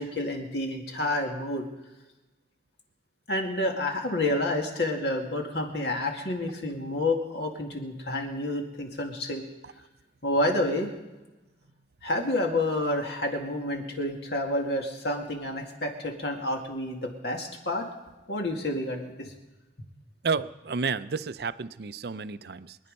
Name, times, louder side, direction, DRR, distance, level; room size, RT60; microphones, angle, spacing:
voice 1, 0.0-1.7 3.3-9.4 10.2-10.9 12.0-17.9 18.3-19.3, left 1 dB, 65° left, 2 dB, 2.2 m, -29 dB
voice 2, 20.2-22.8, right 5 dB, 60° right, 14 dB, 0.5 m, -31 dB
24.5 x 9.5 x 5.3 m, 1.1 s
head